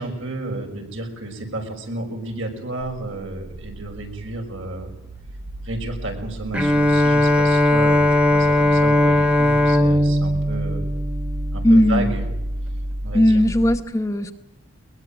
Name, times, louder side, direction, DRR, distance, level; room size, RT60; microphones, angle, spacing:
voice 1, 0.0-4.9 5.6-10.8 11.5-12.2 13.0-13.4, right 2 dB, 65° right, 3 dB, 6.0 m, -31 dB
sound 1, 3.4-13.8, right 1 dB, 80° right, 1.3 m, -32 dB
Bowed string instrument, 6.5-11.8, left 1 dB, 5° right, 1.2 m, -18 dB
voice 2, 11.6-12.1 13.1-14.3, left 1 dB, 15° left, 7 dB, 0.9 m, -17 dB
21.5 x 21.5 x 9.0 m, 0.90 s
head